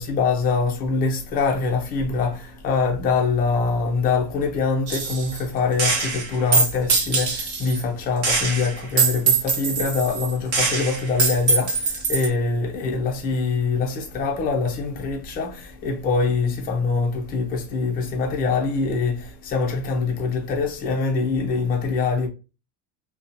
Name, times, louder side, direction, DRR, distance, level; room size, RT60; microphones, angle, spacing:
voice 1, 0.0-22.3, left 4 dB, 20° left, 0.4 m, -24 dB
Gunshot gunfire, 4.9-5.4 5.8-7.8 8.2-12.3, right 4 dB, 40° right, 0.9 m, -22 dB
2.7 x 2.2 x 2.6 m
supercardioid pair, 140°, 48 cm